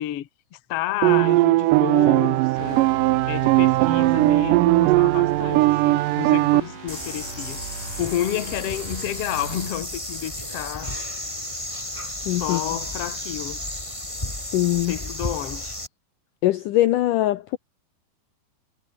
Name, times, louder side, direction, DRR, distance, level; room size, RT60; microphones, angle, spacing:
voice 1, 0.0-2.9 3.3-11.0 12.4-13.6 14.9-15.8, left 12 dB, 55° left, 1.8 m, -30 dB
sound 1, 1.0-6.6, right 19 dB, 85° right, 1.9 m, -18 dB
sound 2, 2.6-9.7, right 5 dB, 55° right, 6.5 m, -37 dB
sound 3, 6.9-15.9, left 1 dB, 5° left, 5.8 m, -33 dB
voice 2, 12.3-12.6 14.5-15.0 16.4-17.6, left 15 dB, 70° left, 2.1 m, -21 dB
omnidirectional pair, 4.5 m